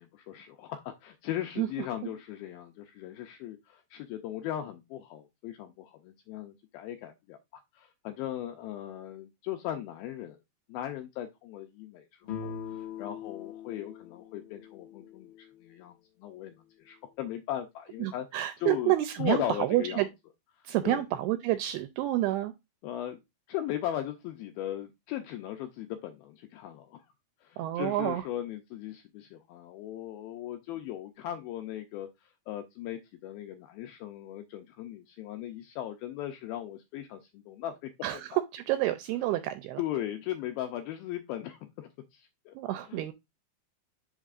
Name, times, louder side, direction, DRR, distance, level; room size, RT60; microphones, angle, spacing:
voice 1, 0.0-10.4 10.7-18.3 18.6-18.9 19.2-20.1 20.8-21.0 22.8-23.2 23.5-27.1 27.4-37.9 39.8-42.6 42.9-43.1, left 12 dB, 85° left, 2.1 m, -38 dB
voice 2, 1.6-2.1 18.0-20.1 20.7-22.5 27.6-28.2 38.0-39.8 42.6-43.1, right 15 dB, 85° right, 2.3 m, -29 dB
sound 1, 12.2-15.9, left 8 dB, 65° left, 1.9 m, -42 dB
10.0 x 4.0 x 2.4 m
omnidirectional pair, 4.9 m